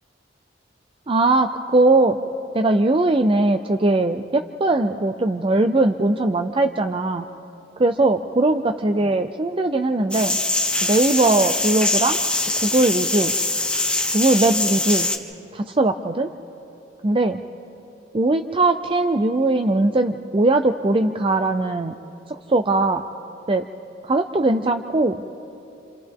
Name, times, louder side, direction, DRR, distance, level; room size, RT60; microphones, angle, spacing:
voice 1, 1.1-2.2 2.5-7.3 7.8-10.4 10.8-12.2 12.6-13.3 14.1-15.1 15.5-16.3 17.0-17.4 18.1-22.0 22.3-23.0 23.5-23.7 24.0-25.2, right 2 dB, 30° right, 7 dB, 0.5 m, -20 dB
sound 1, 10.1-15.2, left 2 dB, 5° left, 1.1 m, -23 dB
28.5 x 27.5 x 3.7 m, 2.7 s
head